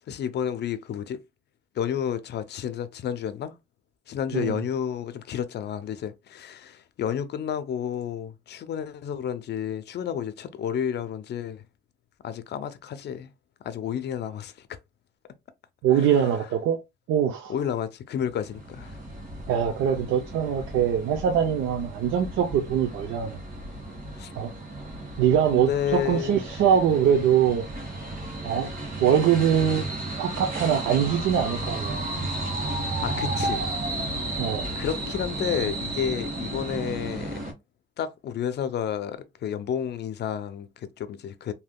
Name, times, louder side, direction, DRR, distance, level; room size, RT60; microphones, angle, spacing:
voice 1, 0.1-1.2 1.7-3.5 4.1-11.6 12.2-13.3 13.6-14.7 15.9-16.3 17.5-19.0 24.2-24.3 25.5-26.6 33.0-33.7 34.8-37.4 38.0-41.5, left 9 dB, 60° left, 0.5 m, -31 dB
voice 2, 15.8-16.8 17.1-17.5 19.5-23.4 24.4-24.5 25.2-27.7 28.4-28.7 29.0-29.8 30.2-32.0 34.4-34.7, right 8 dB, 85° right, 0.6 m, -23 dB
sound 1, 18.3-37.5, right 2 dB, 45° right, 1.5 m, -33 dB
3.4 x 2.8 x 2.2 m
cardioid pair, 90°, 20 cm